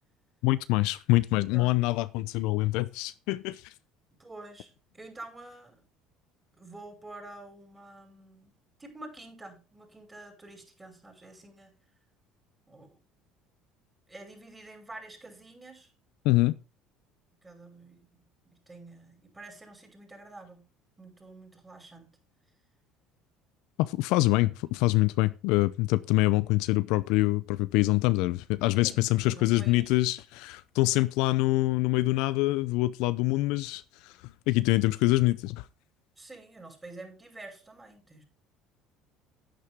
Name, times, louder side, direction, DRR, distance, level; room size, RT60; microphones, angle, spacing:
voice 1, 0.4-3.6 16.2-16.6 23.8-34.1 34.5-35.6, left 19 dB, 75° left, 0.6 m, -25 dB
voice 2, 1.3-1.8 4.2-5.8 6.6-8.5 8.8-11.7 12.7-13.0 14.1-15.9 17.4-20.6 21.0-22.1 28.8-30.0 36.2-38.2, right 2 dB, 15° right, 5.5 m, -48 dB
10.5 x 9.5 x 3.6 m
supercardioid pair, 85°, 0 cm